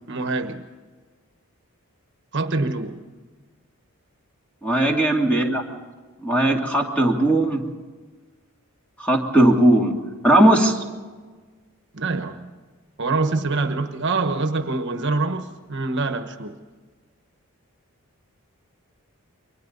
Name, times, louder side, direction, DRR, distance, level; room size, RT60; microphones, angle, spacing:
voice 1, 0.1-0.7 2.3-3.0 11.9-12.5 13.0-16.6, right 3 dB, 55° right, 7 dB, 1.3 m, -25 dB
voice 2, 4.6-5.6 6.2-7.6 9.0-9.9 10.2-10.8, right 1 dB, 5° left, 0 dB, 2.6 m, -18 dB
29.5 x 23.0 x 4.1 m, 1.4 s
head